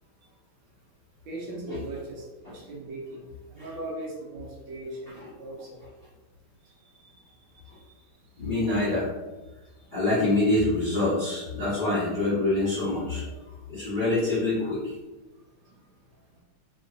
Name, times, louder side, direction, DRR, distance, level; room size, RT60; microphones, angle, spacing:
voice 1, 1.3-5.8 7.0-7.1 7.5-7.7 15.6-15.8, right 2 dB, 70° right, -2 dB, 1.3 m, -39 dB
voice 2, 8.4-9.1 9.9-13.3 13.7-14.9, left 2 dB, 35° left, -12 dB, 1.1 m, -25 dB
3.0 x 3.0 x 2.5 m, 1.2 s
omnidirectional pair, 2.3 m